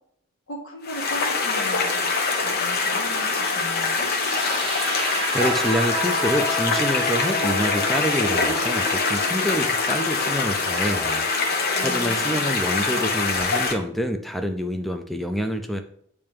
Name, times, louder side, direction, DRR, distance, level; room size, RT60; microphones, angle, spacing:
voice 1, 0.5-2.1 2.4-4.1 11.7-12.5, left 1 dB, 75° left, -1 dB, 1.7 m, -37 dB
sound 1, 0.8-13.7, left 4 dB, 50° left, 0.9 m, -24 dB
sound 2, 3.9-12.0, right 1 dB, 25° right, 1.5 m, -32 dB
voice 2, 5.3-11.3 11.8-15.8, equal, ahead, 5 dB, 0.3 m, -27 dB
8.6 x 3.2 x 3.4 m, 0.68 s
head